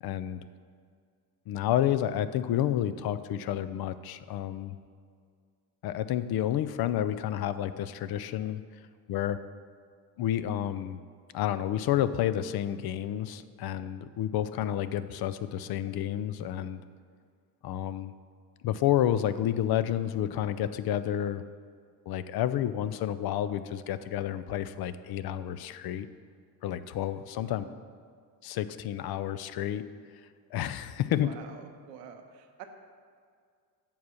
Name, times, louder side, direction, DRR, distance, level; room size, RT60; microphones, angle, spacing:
voice 1, 0.0-0.4 1.5-4.8 5.8-8.6 9.1-9.4 10.2-11.0 11.3-16.8 17.6-18.1 18.6-21.4 22.1-26.1 26.6-27.6 28.4-29.8 30.5-31.3, left 11 dB, 50° left, 13 dB, 0.5 m, -30 dB
voice 2, 27.4-27.8 31.1-32.6, right 7 dB, 90° right, 6 dB, 0.8 m, -47 dB
7.1 x 4.7 x 6.2 m, 2.1 s
hypercardioid pair, 60°, 49 cm